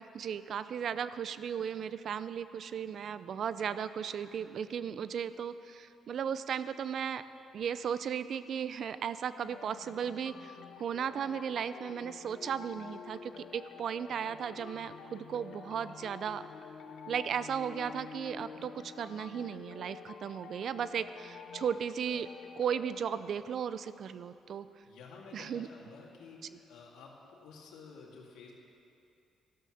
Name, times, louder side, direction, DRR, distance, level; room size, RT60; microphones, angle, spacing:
voice 1, 0.0-7.2 7.5-10.5 10.8-16.4 17.1-22.3 22.6-24.7 25.3-25.7, right 8 dB, 60° right, 14 dB, 0.5 m, -36 dB
sound 1, 9.4-23.9, left 6 dB, 70° left, 0.8 m, -49 dB
voice 2, 24.8-28.5, left 4 dB, 85° left, -1 dB, 2.3 m, -51 dB
13.5 x 12.5 x 6.5 m, 2.7 s
cardioid pair, 90°, 0 cm